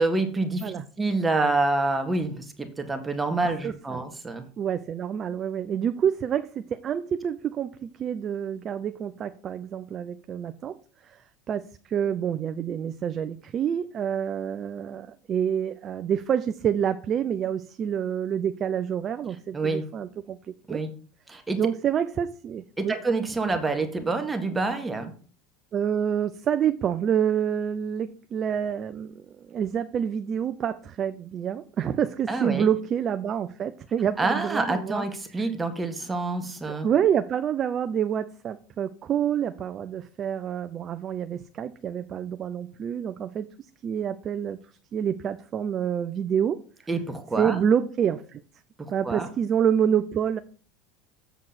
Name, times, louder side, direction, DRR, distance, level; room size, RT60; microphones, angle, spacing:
voice 1, 0.0-4.4 19.5-19.8 20.7-20.9 21.3-21.6 22.8-25.1 32.3-32.7 34.2-36.9 46.9-47.6 48.8-49.3, right 3 dB, 15° right, 6 dB, 1.8 m, -27 dB
voice 2, 3.6-4.0 4.6-10.8 11.0-11.2 11.5-20.8 21.6-23.0 25.7-29.1 29.5-35.0 35.4-35.5 36.7-43.5 43.8-44.6 44.9-46.6 47.4-48.4 48.9-50.4, right 8 dB, 40° right, 10 dB, 0.6 m, -27 dB
7.8 x 7.1 x 4.3 m, 0.41 s
hypercardioid pair, 95°, 0 cm